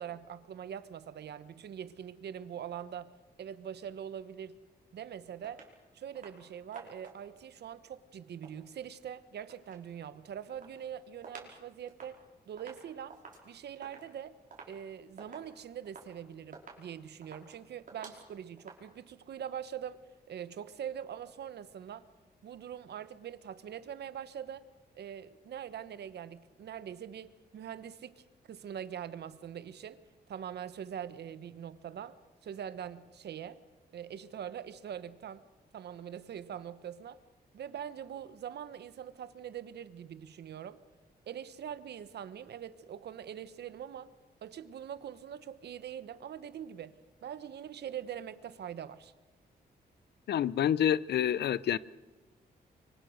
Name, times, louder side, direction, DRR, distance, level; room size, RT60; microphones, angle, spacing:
voice 1, 0.0-3.1 3.4-4.6 4.9-5.6 5.9-13.2 13.4-14.4 14.7-20.0 20.3-22.1 22.4-24.6 24.9-30.0 30.3-32.2 32.4-33.6 33.9-35.4 35.7-37.2 37.5-40.8 41.3-44.1 44.4-49.1, right 9 dB, 80° right, 14 dB, 1.1 m, -43 dB
sound 1, 5.4-5.7 6.2-6.4 6.7-7.4 8.2-9.9 10.2-11.6 11.9-18.8, right 4 dB, 50° right, 5.4 m, -52 dB
voice 2, 50.3-51.8, left 10 dB, 75° left, 19 dB, 0.7 m, -28 dB
24.5 x 24.5 x 6.5 m, 1.2 s
cardioid pair, 100°, 17 cm